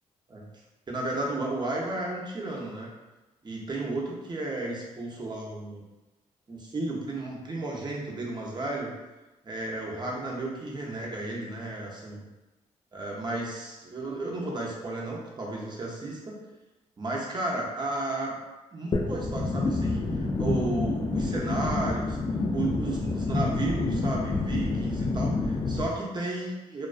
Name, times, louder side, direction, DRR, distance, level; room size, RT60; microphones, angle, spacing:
voice 1, 0.9-2.9 3.4-5.8 6.5-8.9 9.4-12.2 12.9-16.4 17.0-18.4 18.7-22.2 22.5-26.9, right 2 dB, 30° right, -3 dB, 0.7 m, -33 dB
sound 1, 18.9-25.9, left 3 dB, 30° left, 0.3 m, -28 dB
2.3 x 2.2 x 2.4 m, 1.1 s
supercardioid pair, 60°, 14 cm